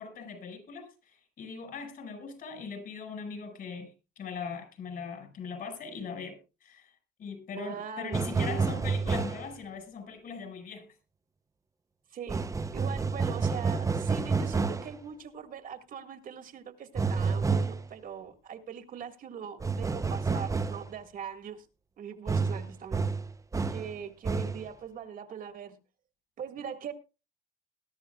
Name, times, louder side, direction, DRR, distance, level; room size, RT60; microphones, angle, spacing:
voice 1, 0.0-11.0, left 5 dB, 60° left, 5.4 m, -41 dB
voice 2, 7.6-8.7 12.1-12.4 12.7-21.7 22.0-23.1 23.7-25.8 26.4-26.9, right 7 dB, 55° right, 1.9 m, -41 dB
sound 1, 8.1-9.5 12.3-14.9 17.0-17.9 19.6-20.9 22.3-23.9 24.2-24.7, right 4 dB, 20° right, 0.8 m, -29 dB
21.0 x 12.0 x 2.4 m
cardioid pair, 110°, 17 cm